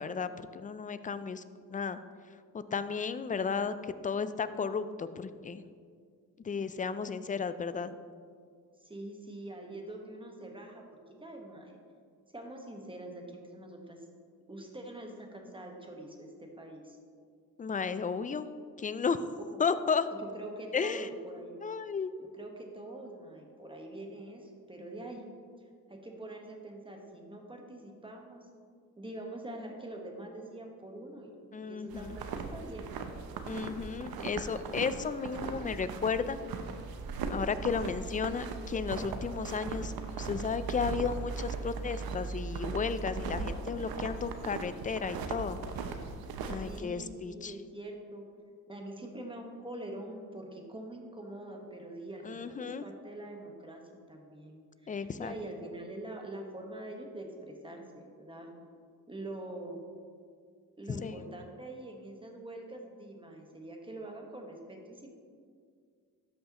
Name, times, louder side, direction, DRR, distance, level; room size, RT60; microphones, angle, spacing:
voice 1, 0.0-1.4 1.7-2.0 2.7-5.6 6.4-7.9 17.6-18.5 18.8-19.2 19.6-20.1 20.7-21.1 21.6-22.1 31.5-32.2 33.5-36.4 37.3-39.9 40.2-45.6 46.5-47.5 52.2-52.8 54.9-55.3 60.9-61.2, left 5 dB, 25° left, 13 dB, 0.3 m, -33 dB
voice 2, 8.8-11.8 12.3-14.0 14.5-17.0 19.5-19.6 20.1-21.6 22.2-25.3 25.9-28.5 29.0-33.0 46.6-48.3 48.7-53.8 54.1-58.5 59.1-59.8 60.8-65.1, right 1 dB, 15° right, 1 dB, 1.2 m, -44 dB
sound 1, 31.9-46.8, right 4 dB, 90° right, 0.7 m, -38 dB
12.5 x 5.5 x 2.9 m, 2.1 s
cardioid pair, 80°, 35 cm